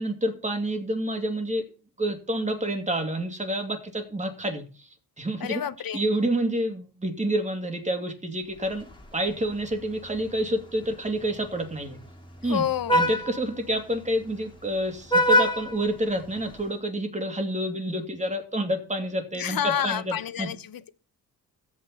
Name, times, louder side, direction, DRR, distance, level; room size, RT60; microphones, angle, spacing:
voice 1, 0.0-1.7 2.0-4.9 5.2-5.6 5.9-12.0 12.4-12.6 12.9-20.5, right 1 dB, 20° right, 2.5 m, -28 dB
voice 2, 5.4-6.0 12.4-13.1 19.3-20.9, left 9 dB, 60° left, 1.0 m, -29 dB
Vehicle horn car horn honking, 8.6-16.7, equal, 10° left, 2.4 m, -29 dB
13.5 x 8.6 x 4.3 m
cardioid pair, 75°, 39 cm